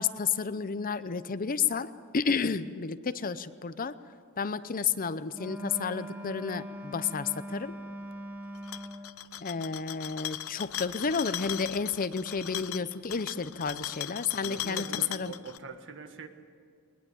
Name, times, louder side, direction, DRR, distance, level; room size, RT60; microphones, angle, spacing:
voice 1, 0.0-4.0 4.4-7.7 9.4-15.3, left 5 dB, 40° left, 13 dB, 0.7 m, -31 dB
Wind instrument woodwind instrument, 5.3-9.2, equal, 10° right, 1.5 m, -41 dB
sound 1, 8.6-15.6, left 12 dB, 80° left, 0.7 m, -38 dB
voice 2, 14.4-16.3, right 4 dB, 60° right, 7 dB, 1.7 m, -43 dB
21.0 x 20.5 x 8.6 m, 2.2 s
head